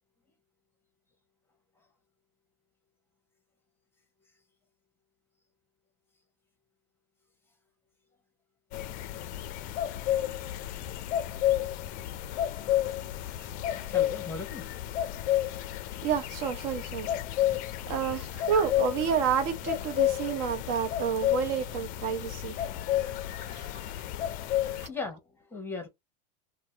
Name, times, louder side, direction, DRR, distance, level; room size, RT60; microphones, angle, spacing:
sound 1, 8.7-24.9, left 12 dB, 45° left, 0.4 m, -31 dB
voice 1, 12.8-14.7 18.4-18.6 22.8-25.9, left 3 dB, 10° left, 0.9 m, -42 dB
voice 2, 16.0-17.1 17.5-17.6 17.9-22.7 23.3-23.9 24.7-24.9, right 7 dB, 55° right, 0.7 m, -30 dB
2.6 x 2.1 x 3.2 m
supercardioid pair, 120°, 20 cm